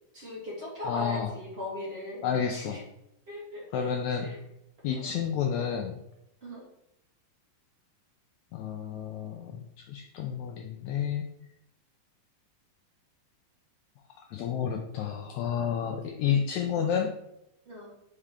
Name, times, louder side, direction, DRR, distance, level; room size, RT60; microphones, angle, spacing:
voice 1, 0.1-2.3 2.5-2.8 3.3-3.9 4.2-4.4 5.0-5.1 6.4-6.6 17.6-17.9, left 1 dB, 25° right, -6 dB, 1.5 m, -38 dB
voice 2, 0.8-1.3 2.2-2.8 3.7-4.3 4.8-5.9 8.5-11.3 14.3-17.1, left 8 dB, 90° left, 2 dB, 1.6 m, -30 dB
5.5 x 4.9 x 3.6 m, 0.83 s
omnidirectional pair, 3.9 m